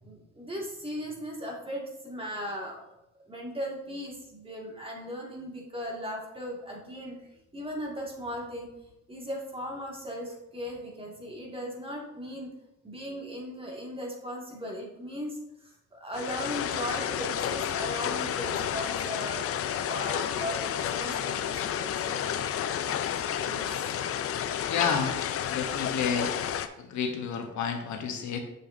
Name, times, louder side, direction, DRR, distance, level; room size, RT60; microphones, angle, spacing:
voice 1, 0.0-2.8 3.3-8.7 9.1-12.5 12.8-22.4 23.1-23.9 25.1-25.2, equal, 20° right, -1 dB, 1.9 m, -38 dB
sound 1, 16.1-26.7, left 9 dB, 50° left, 0.5 m, -31 dB
voice 2, 24.7-25.1 25.5-26.3 26.8-28.4, left 6 dB, 70° left, 5 dB, 0.9 m, -30 dB
6.9 x 6.6 x 2.6 m, 0.86 s
cardioid pair, 90°, 30 cm